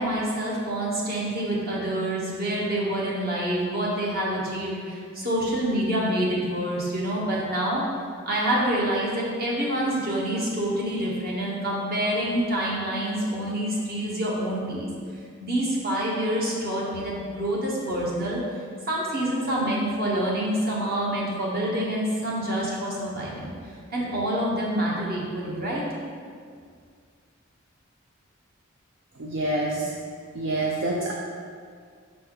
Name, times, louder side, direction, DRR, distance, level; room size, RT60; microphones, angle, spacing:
voice 1, 0.0-7.8 8.2-14.9 15.4-18.4 18.9-23.5 23.9-25.8, right 1 dB, 50° right, -4 dB, 1.3 m, -27 dB
voice 2, 29.2-29.9 30.3-31.1, right 2 dB, 65° right, -2 dB, 0.6 m, -26 dB
6.2 x 4.2 x 3.9 m, 2.1 s
head